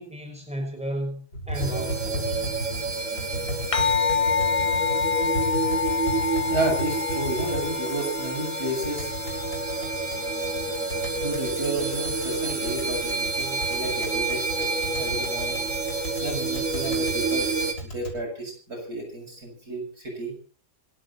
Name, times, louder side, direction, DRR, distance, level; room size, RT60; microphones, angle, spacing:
voice 1, 0.0-2.4, equal, 5° right, 1 dB, 6.0 m, -33 dB
Tap, 1.3-18.2, equal, 75° left, 7.3 m, -36 dB
sound 1, 1.5-17.7, right 3 dB, 50° right, 2.8 m, -29 dB
sound 2, 3.7-12.4, left 6 dB, 25° left, 0.8 m, -28 dB
voice 2, 6.5-9.1 9.4-9.7 11.2-15.7 16.2-17.5 17.8-20.4, right 2 dB, 70° right, 0 dB, 7.7 m, -32 dB
27.0 x 12.0 x 4.2 m, 0.39 s
omnidirectional pair, 1.7 m